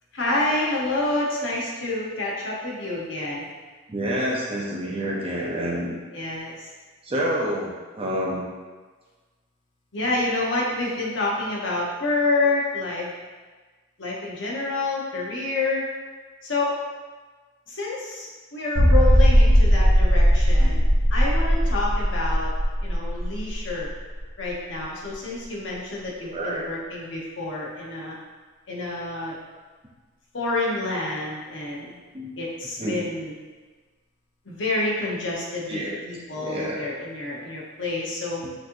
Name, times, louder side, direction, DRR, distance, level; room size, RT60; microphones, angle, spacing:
voice 1, 0.1-3.5 6.1-6.7 9.9-13.1 14.0-15.9 16.4-16.7 17.7-20.8 21.1-22.5 22.8-23.9 24.4-28.2 28.7-29.4 30.3-32.0 32.4-33.3 34.5-38.4, left 2 dB, 65° left, -4 dB, 1.0 m, -28 dB
voice 2, 3.9-5.9 7.0-8.5 18.8-18.9 20.6-20.7 26.2-26.6 32.1-32.3 32.8-33.1 35.7-36.0 36.4-36.8 38.4-38.5, equal, 25° right, -3 dB, 0.6 m, -28 dB
sound 1, 18.8-24.2 24.5-24.6 25.1-25.2, equal, 55° right, 1.1 m, -18 dB
6.2 x 2.9 x 2.6 m, 1.4 s
head